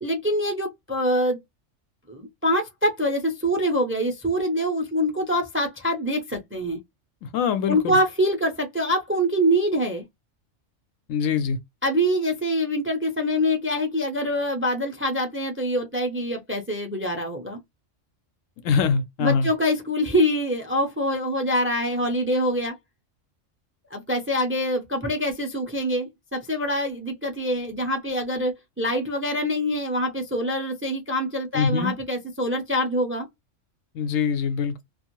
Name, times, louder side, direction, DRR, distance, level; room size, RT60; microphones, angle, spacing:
voice 1, 0.0-1.4 2.1-6.8 7.7-10.0 11.8-17.6 19.2-22.8 23.9-33.3, equal, 15° right, 0.4 m, -25 dB
voice 2, 7.2-8.0 11.1-11.6 18.6-19.5 31.5-31.9 33.9-34.8, left 6 dB, 85° left, 1.0 m, -23 dB
2.5 x 2.4 x 2.9 m
omnidirectional pair, 1.3 m